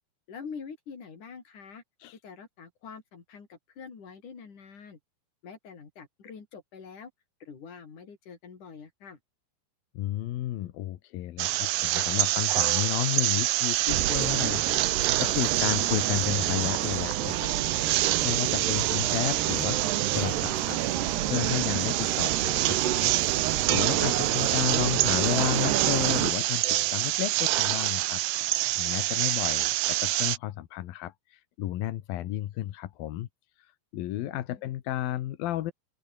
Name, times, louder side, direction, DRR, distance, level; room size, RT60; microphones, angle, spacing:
voice 1, 0.3-1.8 2.2-5.0 5.4-7.1 7.4-9.2 34.2-34.6, left 6 dB, 40° left, 5.4 m, -45 dB
voice 2, 9.9-23.1 23.7-28.2 28.8-33.3 33.9-35.7, left 14 dB, 70° left, 2.3 m, -32 dB
sound 1, 11.4-30.4, right 17 dB, 90° right, 2.2 m, -27 dB
sound 2, 13.9-26.3, right 12 dB, 65° right, 3.6 m, -30 dB
open air
omnidirectional pair, 5.6 m